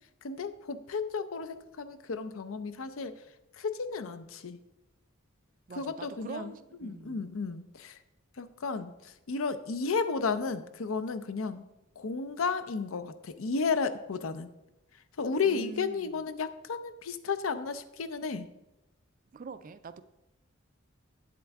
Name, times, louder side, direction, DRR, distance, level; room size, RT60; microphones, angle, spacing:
voice 1, 0.2-3.1 3.5-4.6 5.8-6.5 6.8-8.0 8.4-11.7 12.0-14.5 15.2-18.5, left 4 dB, 75° left, 11 dB, 0.6 m, -33 dB
voice 2, 5.7-7.2 15.4-16.2 19.3-20.0, right 4 dB, 40° right, 12 dB, 0.4 m, -44 dB
8.8 x 7.5 x 3.5 m, 0.94 s
head